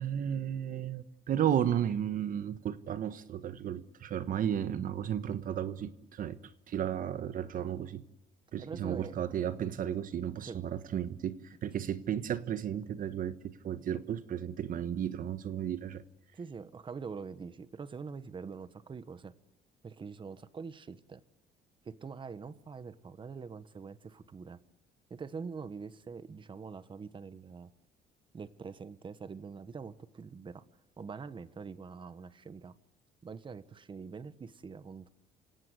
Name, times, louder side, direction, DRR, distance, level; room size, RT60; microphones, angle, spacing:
voice 1, 0.0-6.4 6.7-8.0 8.5-16.0, right 9 dB, 55° right, 12 dB, 1.3 m, -34 dB
voice 2, 8.6-9.2 10.4-10.6 16.3-19.3 19.8-21.2 21.8-24.6 25.1-27.7 28.3-30.6 31.0-32.7 33.2-35.1, right 5 dB, 30° right, 13 dB, 1.3 m, -44 dB
27.5 x 17.5 x 9.5 m, 0.94 s
cardioid pair, 110°, 17 cm